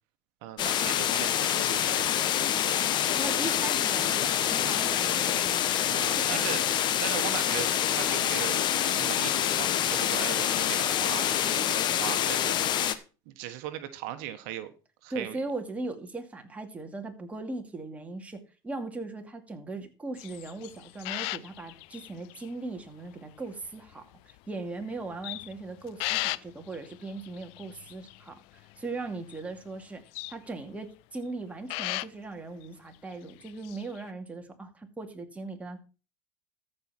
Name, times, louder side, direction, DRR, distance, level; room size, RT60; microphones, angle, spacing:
voice 1, 0.4-2.1 5.8-6.6 7.0-8.7 8.9-12.9 13.3-14.7 15.0-15.4, right 13 dB, 70° right, 10 dB, 1.2 m, -38 dB
sound 1, 0.6-12.9, left 10 dB, 45° left, 1.2 m, -26 dB
voice 2, 3.1-6.7 15.1-35.8, right 3 dB, 15° right, 4 dB, 2.3 m, -39 dB
sound 2, 20.2-22.5 22.8-22.9 23.6-24.4 24.8-28.8 29.1-29.6 30.1-30.4 31.7-32.1 32.6-32.7 33.1-34.1, left 20 dB, 65° left, 0.5 m, -37 dB
14.0 x 5.5 x 6.0 m, 0.34 s
supercardioid pair, 100°, 10 cm